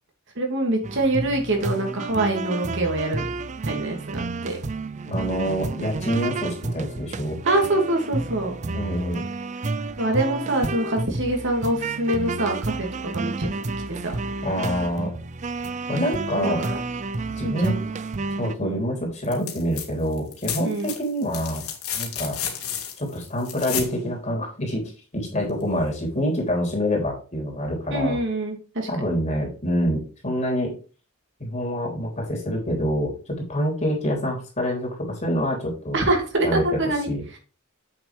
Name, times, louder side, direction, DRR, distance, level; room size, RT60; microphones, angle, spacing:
voice 1, 0.4-3.2 3.7-4.6 7.4-8.5 10.0-13.5 13.9-14.1 16.4-16.8 17.4-17.8 18.6-18.8 20.6-20.9 27.9-28.9 35.9-37.1, right 1 dB, 55° right, 2 dB, 2.4 m, -25 dB
sound 1, 0.8-18.5, right 3 dB, 35° right, 0.5 m, -30 dB
voice 2, 5.1-7.4 8.7-9.2 14.4-15.1 15.9-16.6 17.4-17.7 18.4-21.7 21.9-22.4 23.0-28.2 28.9-30.8 31.4-36.0 36.4-36.8 37.1-37.2, equal, 30° left, 0 dB, 3.4 m, -26 dB
sound 2, 19.2-19.9 20.1-24.0 25.6-25.7, left 8 dB, 90° left, 2.2 m, -32 dB
8.1 x 6.3 x 3.4 m, 0.36 s
head